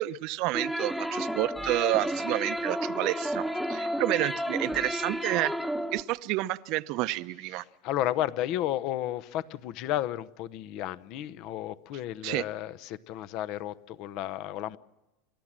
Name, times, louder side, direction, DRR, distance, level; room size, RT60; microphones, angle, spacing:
voice 1, 0.0-5.5 5.9-7.6 12.2-12.4, right 17 dB, 55° right, 0.8 m, -29 dB
sound 1, 0.5-6.0, equal, ahead, 1.0 m, -32 dB
voice 2, 7.5-14.8, left 13 dB, 55° left, 0.8 m, -33 dB
29.5 x 13.5 x 7.5 m
supercardioid pair, 130°, 0 cm